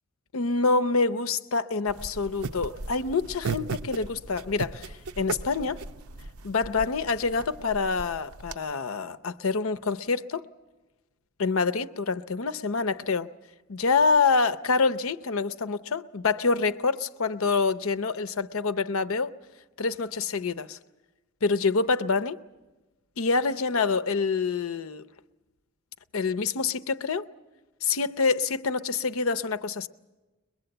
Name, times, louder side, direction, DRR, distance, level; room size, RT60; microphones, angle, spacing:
voice 1, 0.3-5.8 6.4-10.4 11.4-13.3 13.7-19.3 19.8-20.8 21.4-22.4 23.2-25.1 26.1-27.2 27.8-29.9, left 4 dB, 70° left, 0.7 m, -26 dB
sound 1, 1.9-8.5, right 4 dB, 85° right, 0.7 m, -37 dB
22.5 x 21.5 x 7.9 m
head